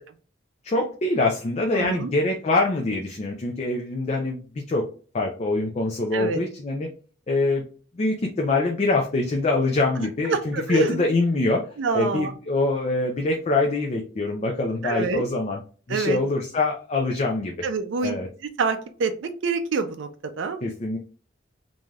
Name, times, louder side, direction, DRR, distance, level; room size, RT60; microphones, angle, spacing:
voice 1, 0.6-4.8 5.1-6.9 7.3-7.7 8.0-11.6 11.9-15.6 15.9-17.5 18.0-18.3 20.6-21.0, left 2 dB, 35° left, 1 dB, 0.4 m, -24 dB
voice 2, 1.7-2.1 6.1-6.4 10.2-10.9 11.8-12.3 14.8-15.2 15.9-16.2 17.6-18.2 18.6-20.1 20.4-20.6, right 4 dB, 70° right, 7 dB, 0.4 m, -26 dB
3.2 x 2.6 x 2.3 m, 0.39 s
head